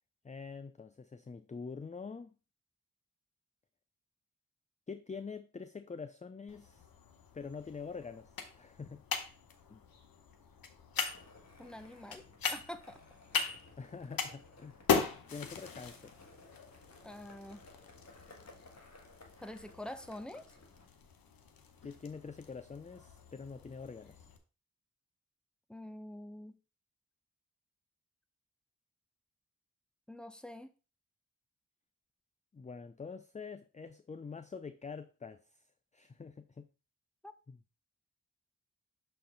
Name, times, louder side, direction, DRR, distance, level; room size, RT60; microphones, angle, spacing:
voice 1, 0.2-2.3 4.9-6.8 7.3-9.0 9.7-9.8 13.8-14.8 15.3-16.1 21.8-24.3 32.5-35.6 35.9-36.7 37.5-37.6, left 5 dB, 20° left, 0.4 m, -45 dB
sound 1, 6.5-24.4, left 6 dB, 85° left, 0.9 m, -40 dB
Skateboard, 11.1-20.9, left 2 dB, 50° left, 1.7 m, -59 dB
voice 2, 11.6-13.0 17.0-17.6 19.4-20.4 25.7-26.6 30.1-30.7 37.2-37.3, left 1 dB, 5° left, 0.8 m, -46 dB
6.4 x 4.4 x 3.8 m
cardioid pair, 50°, 34 cm